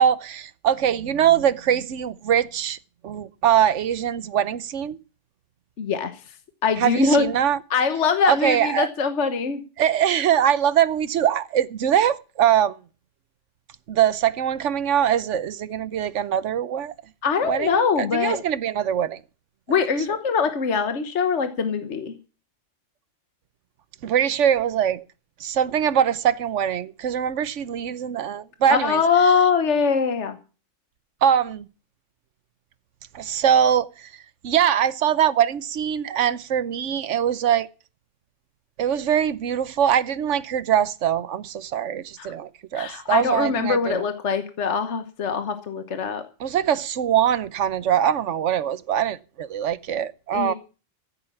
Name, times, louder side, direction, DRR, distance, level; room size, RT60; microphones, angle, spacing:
voice 1, 0.0-2.8 3.0-5.0 6.8-7.6 8.3-8.9 9.8-12.7 13.9-16.9 17.4-19.2 24.0-25.0 25.4-29.0 31.2-31.7 33.1-34.1 34.4-37.7 38.8-44.0 46.4-50.5, right 9 dB, 70° right, 1.2 m, -22 dB
voice 2, 5.8-6.3 6.6-7.2 7.7-9.6 17.2-18.4 19.7-22.1 28.7-30.4 42.2-42.3 42.7-46.2 50.3-50.5, left 5 dB, 65° left, 1.4 m, -22 dB
15.0 x 8.3 x 7.1 m
omnidirectional pair, 1.3 m